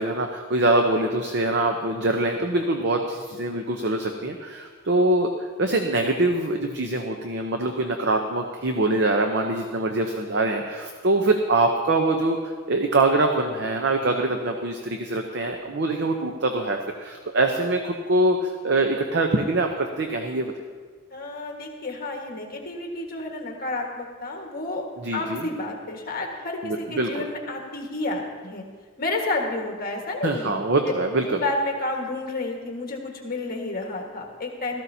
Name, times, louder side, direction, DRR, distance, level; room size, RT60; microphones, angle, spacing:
voice 1, 0.0-5.3 5.6-20.5 25.0-25.5 26.6-27.3 30.2-31.4, right 2 dB, 50° right, 4 dB, 0.7 m, -24 dB
voice 2, 21.1-24.9 25.1-28.6 29.0-30.5 31.2-34.8, left 2 dB, 40° left, 1 dB, 1.6 m, -30 dB
16.5 x 14.0 x 2.8 m, 1.5 s
head